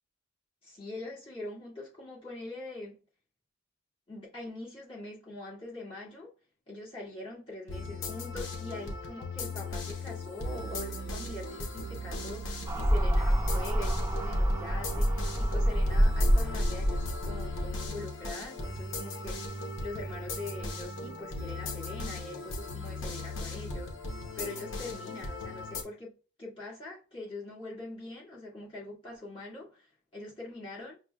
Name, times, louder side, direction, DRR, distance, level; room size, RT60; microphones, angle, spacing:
voice 1, 0.6-3.0 4.1-6.3 6.7-19.4 19.8-23.9 24.4-26.1 26.4-31.0, left 2 dB, 25° left, 1.7 m, -43 dB
sound 1, 7.7-25.8, left 2 dB, 80° left, 0.7 m, -38 dB
sound 2, 12.7-17.9, equal, 20° right, 0.4 m, -27 dB
5.8 x 2.2 x 2.2 m
head